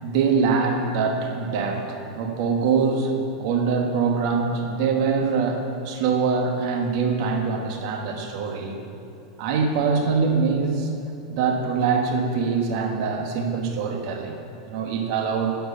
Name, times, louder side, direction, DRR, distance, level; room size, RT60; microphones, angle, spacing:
voice 1, 0.0-8.8 9.4-10.9 11.3-14.4 14.7-15.6, right 5 dB, 60° right, 3 dB, 1.2 m, -24 dB
10.5 x 4.7 x 5.4 m, 2.8 s
supercardioid pair, 130°, 3 cm